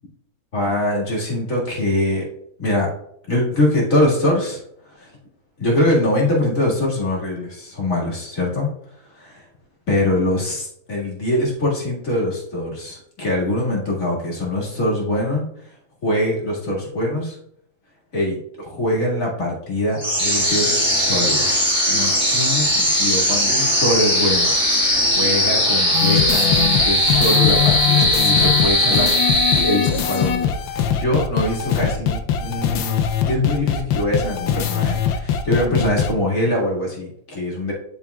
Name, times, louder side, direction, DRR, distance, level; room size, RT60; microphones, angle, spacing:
voice 1, 0.5-2.2 2.6-2.9 3.3-4.6 5.0-5.1 5.6-8.7 9.1-9.4 9.9-15.5 16.0-17.4 18.1-24.8 25.2-29.1 29.5-37.7, left 1 dB, 45° left, -4 dB, 2.2 m, -23 dB
sound 1, 20.0-30.2, left 1 dB, 5° right, 1.6 m, -19 dB
sound 2, 25.9-36.1, left 8 dB, 80° left, 1.4 m, -21 dB
10.5 x 4.6 x 2.3 m, 0.71 s
omnidirectional pair, 2.1 m